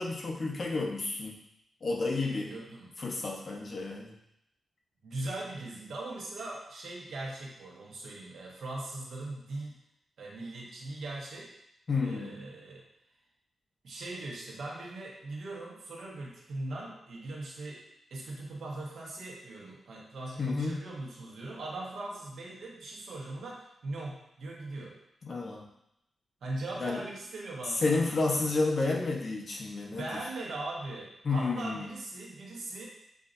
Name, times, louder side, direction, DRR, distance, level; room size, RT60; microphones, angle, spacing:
voice 1, 0.0-1.3 1.8-2.5 3.0-4.1 11.9-12.4 20.4-20.8 25.2-25.6 26.8-27.1 27.8-30.2 31.2-31.9, left 3 dB, 45° left, 0 dB, 0.8 m, -31 dB
voice 2, 2.1-2.9 5.0-9.8 10.2-11.5 12.0-12.8 13.8-17.8 18.1-25.0 26.4-28.5 30.0-32.9, right 2 dB, 85° right, -3 dB, 1.2 m, -40 dB
7.3 x 2.7 x 2.6 m, 0.79 s
wide cardioid pair, 130°, 0 cm